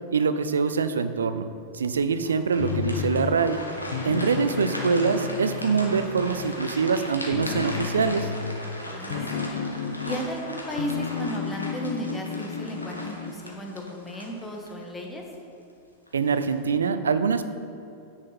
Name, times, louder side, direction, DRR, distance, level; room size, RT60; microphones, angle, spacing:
voice 1, 0.1-1.5 1.7-3.6 4.0-8.3 16.1-17.4, right 5 dB, 70° right, 11 dB, 0.5 m, -24 dB
sound 1, 2.2-14.9 15.3-15.5 16.1-16.6, left 1 dB, 85° left, 1.5 m, -38 dB
sound 2, 2.6-3.6 3.9-6.9 7.3-10.4 10.7-13.4, left 7 dB, 60° left, 0.5 m, -33 dB
voice 2, 8.9-9.6 10.0-15.2, equal, 10° left, 0 dB, 1.7 m, -35 dB
10.0 x 8.7 x 4.4 m, 2.7 s
figure-of-eight pair, 90°, 0 cm